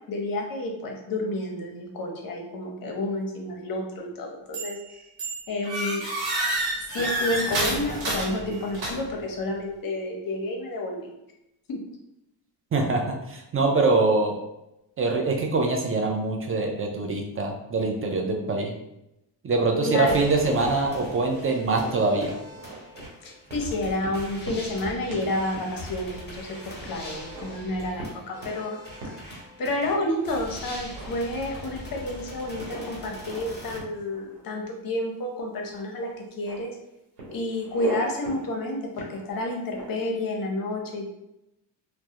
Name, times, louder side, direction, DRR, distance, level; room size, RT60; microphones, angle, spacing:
voice 1, 0.1-5.0 5.5-6.0 6.9-11.1 11.7-11.8 19.8-20.2 23.2-28.8 29.0-29.2 29.6-36.1 36.4-36.8 37.3-41.1, left 1 dB, 45° left, 1 dB, 0.7 m, -30 dB
sound 1, 4.5-4.9 5.2-9.2, right 1 dB, 50° right, 1.1 m, -29 dB
voice 2, 12.7-14.3 15.0-18.7 19.4-22.3, right 3 dB, 30° right, 2 dB, 0.4 m, -24 dB
sound 2, 20.1-33.8, left 1 dB, 20° left, 1.0 m, -42 dB
sound 3, 20.6-21.3 21.7-23.1 23.5-23.7 24.0-24.8 25.1-25.3 25.5-25.7 26.1-26.2 26.8-27.5 28.0-28.6 29.0-29.2 29.8-30.3 30.7-31.9 32.6-33.5 33.7-34.6 35.6-35.8 36.1-36.6 37.2-38.0 38.2-38.5 38.9-40.0, right 2 dB, 85° right, 1.1 m, -40 dB
2.2 x 2.1 x 2.8 m, 0.87 s
cardioid pair, 80°, 49 cm